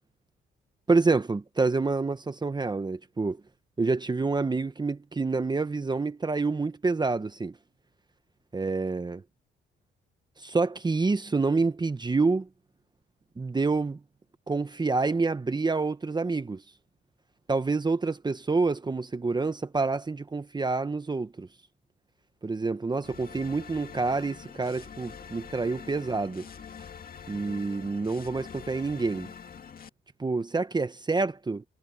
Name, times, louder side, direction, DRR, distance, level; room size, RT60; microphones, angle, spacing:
voice 1, 0.9-3.4 3.8-7.5 8.5-9.2 10.4-12.5 13.4-14.0 14.5-16.6 17.5-21.5 22.4-26.4 27.3-29.3 30.2-31.6, right 3 dB, 20° right, 1.1 m, -27 dB
sound 1, 23.0-29.9, left 7 dB, 45° left, 2.2 m, -45 dB
cardioid pair, 90°, 20 cm